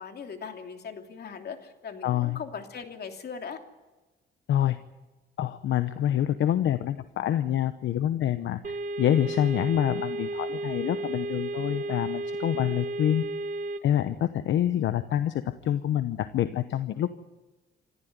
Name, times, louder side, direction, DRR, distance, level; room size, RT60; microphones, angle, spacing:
voice 1, 0.0-3.6, left 6 dB, 55° left, 4 dB, 3.0 m, -39 dB
voice 2, 2.0-2.4 4.5-4.8 5.4-8.6 9.0-13.2 13.8-17.1, left 11 dB, 75° left, 11 dB, 1.0 m, -26 dB
sound 1, 8.6-13.8, right 2 dB, 40° right, 1.6 m, -33 dB
26.5 x 14.0 x 9.5 m, 1.1 s
cardioid pair, 90°, 20 cm